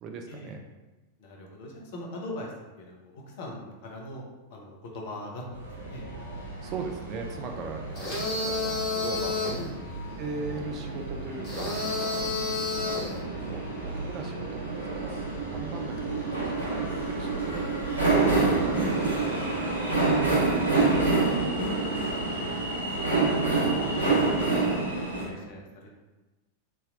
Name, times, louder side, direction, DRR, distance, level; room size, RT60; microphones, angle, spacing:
voice 1, 0.0-0.6 6.6-9.6 10.2-12.3 12.8-13.2 13.5-20.2, right 4 dB, 35° right, 3 dB, 0.4 m, -40 dB
voice 2, 1.2-4.2 4.5-6.0 9.6-9.7 18.7-18.9 21.8-25.9, left 1 dB, 50° left, -1 dB, 0.6 m, -42 dB
sound 1, 5.5-25.3, right 3 dB, 90° left, 0.8 m, -28 dB
sound 2, 8.0-9.7 11.4-13.2, left 3 dB, 35° left, 1.5 m, -30 dB
3.1 x 2.8 x 2.4 m, 1.1 s
figure-of-eight pair, 90°, 0 cm